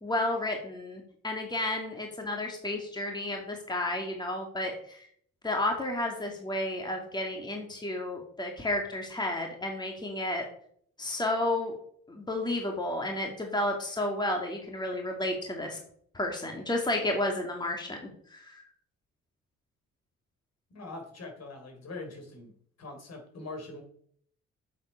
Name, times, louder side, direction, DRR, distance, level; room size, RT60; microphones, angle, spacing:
voice 1, 0.0-5.1 5.4-10.5 11.0-11.8 12.1-15.8 16.1-18.0 18.3-18.6, left 1 dB, 15° left, 2 dB, 2.3 m, -32 dB
voice 2, 20.7-22.5 22.8-23.8, left 2 dB, 55° left, 3 dB, 3.9 m, -42 dB
7.7 x 7.6 x 5.5 m, 0.62 s
cardioid pair, 90°, 30 cm